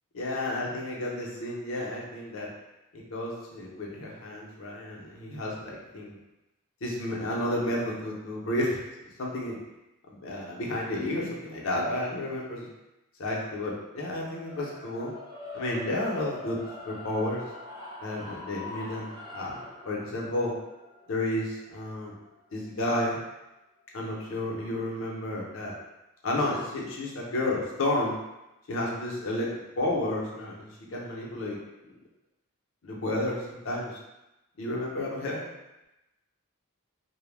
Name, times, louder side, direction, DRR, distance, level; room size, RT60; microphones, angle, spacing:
voice 1, 0.1-2.5 2.9-6.2 6.8-8.8 9.2-9.6 10.1-12.7 13.2-15.1 15.5-16.6 16.9-17.4 18.0-19.6 19.8-20.5 21.1-22.1 22.5-23.2 23.9-25.7 26.2-28.2 28.7-29.5 29.8-31.6 32.8-34.0 34.6-35.4, left 1 dB, 65° left, -3 dB, 0.6 m, -31 dB
sound 1, 14.2-24.4, left 2 dB, 15° right, 0.4 m, -44 dB
2.1 x 2.0 x 3.2 m, 0.97 s
head